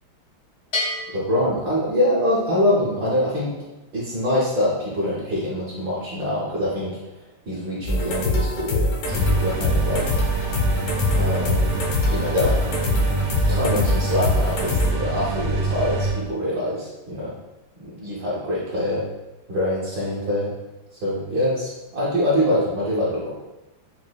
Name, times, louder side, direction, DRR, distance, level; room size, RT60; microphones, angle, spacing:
Bell, 0.7-2.4, left 2 dB, 55° left, 0.8 m, -31 dB
voice 1, 1.1-3.5 3.9-7.0 7.5-10.1 11.1-11.7 12.1-12.6 13.5-17.3 17.8-19.1 19.5-20.5 21.0-23.3, left 1 dB, 65° right, -8 dB, 1.1 m, -24 dB
sound 1, 7.9-14.9, left 1 dB, 70° left, 1.3 m, -23 dB
sound 2, 9.1-16.1, right 3 dB, 90° right, 1.5 m, -26 dB
4.8 x 2.4 x 2.2 m, 1.0 s
omnidirectional pair, 2.3 m